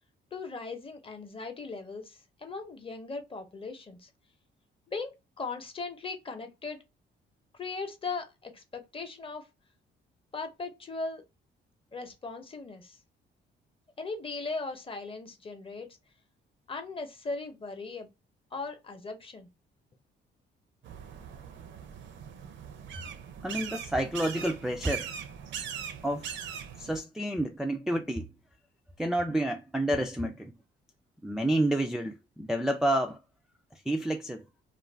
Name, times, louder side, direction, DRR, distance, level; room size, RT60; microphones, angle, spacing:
voice 1, 0.3-4.1 4.9-5.1 5.4-6.8 7.6-9.5 10.3-11.2 11.9-13.0 14.0-15.9 16.7-18.1 18.5-19.5, left 3 dB, 25° left, 0.7 m, -38 dB
sound 1, 20.8-27.0, right 8 dB, 65° right, 0.6 m, -40 dB
voice 2, 23.4-25.1 26.0-26.3 26.8-28.3 29.0-30.6 31.2-33.2 33.9-34.5, right 1 dB, ahead, 0.3 m, -29 dB
2.5 x 2.2 x 3.2 m
cardioid pair, 90°, 20 cm